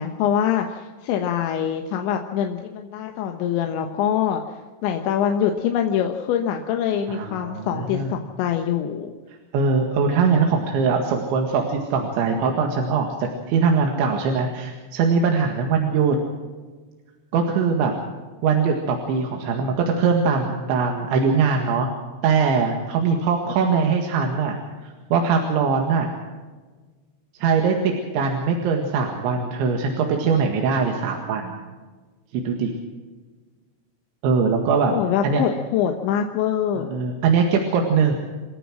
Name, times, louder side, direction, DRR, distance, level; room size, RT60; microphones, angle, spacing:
voice 1, 0.0-4.6 4.8-9.1 23.6-23.7 34.9-36.9, left 9 dB, 85° left, 4 dB, 3.6 m, -24 dB
voice 2, 7.1-8.1 9.5-16.2 17.3-17.9 18.4-21.9 22.2-24.6 24.8-26.1 27.4-31.6 32.3-32.7 34.2-35.0 35.2-35.5 36.8-38.2, right 5 dB, 85° right, 2 dB, 4.3 m, -21 dB
28.5 x 14.5 x 6.3 m, 1.3 s
omnidirectional pair, 5.1 m